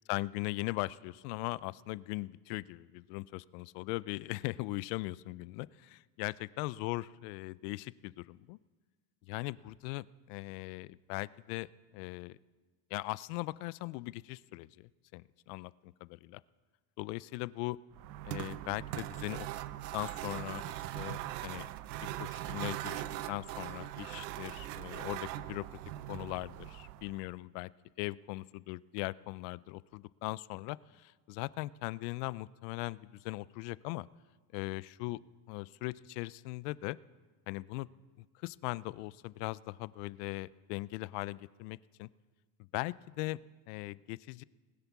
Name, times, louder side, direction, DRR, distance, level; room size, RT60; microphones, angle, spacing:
voice 1, 0.1-8.6 9.3-11.7 11.9-12.4 12.9-16.4 17.0-17.8 18.2-19.5 19.9-21.7 22.2-23.0 23.3-25.6 26.1-27.7 28.0-34.1 34.5-35.2 35.5-37.0 37.5-37.9 38.2-42.1 42.7-43.4 43.7-44.4, left 21 dB, 70° left, 20 dB, 0.5 m, -39 dB
sound 1, 17.9-27.3, right 14 dB, 85° right, 0.7 m, -41 dB
20.0 x 8.0 x 6.0 m, 1.4 s
cardioid pair, 145°, 50 cm